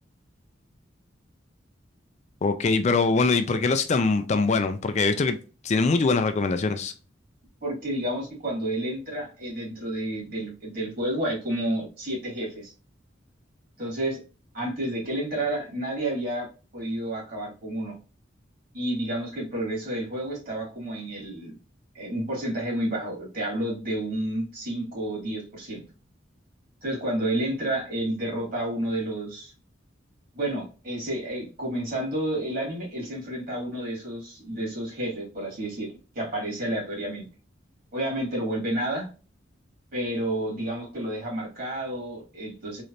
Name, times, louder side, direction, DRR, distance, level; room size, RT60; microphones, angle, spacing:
voice 1, 2.4-5.4 5.6-6.9, left 4 dB, 35° left, 0.4 m, -23 dB
voice 2, 7.6-12.7 13.8-14.2 14.5-16.5 16.7-17.9 18.7-21.5 21.9-25.8 26.8-29.5 30.3-35.9 36.1-37.2 37.9-39.1 39.9-42.8, right 1 dB, 50° right, 2.1 m, -30 dB
3.8 x 3.2 x 2.5 m
head